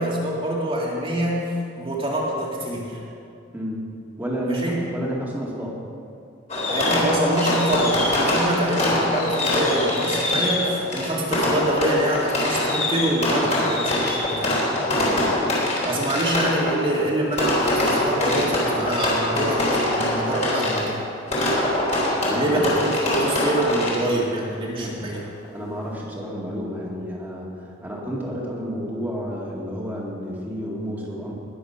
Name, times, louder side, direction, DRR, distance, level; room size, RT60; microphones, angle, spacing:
voice 1, 0.0-1.5 1.8-3.0 4.5-4.8 6.7-14.5 15.8-21.0 22.3-25.2, right 1 dB, 25° right, -4 dB, 2.0 m, -25 dB
voice 2, 3.5-3.9 4.2-5.8 14.9-15.2 16.1-16.2 22.3-22.6 24.8-31.3, equal, 10° right, -5 dB, 2.1 m, -31 dB
Fireworks, 6.5-24.3, left 1 dB, 35° left, 3.5 m, -23 dB
20.0 x 7.7 x 5.7 m, 2.5 s
head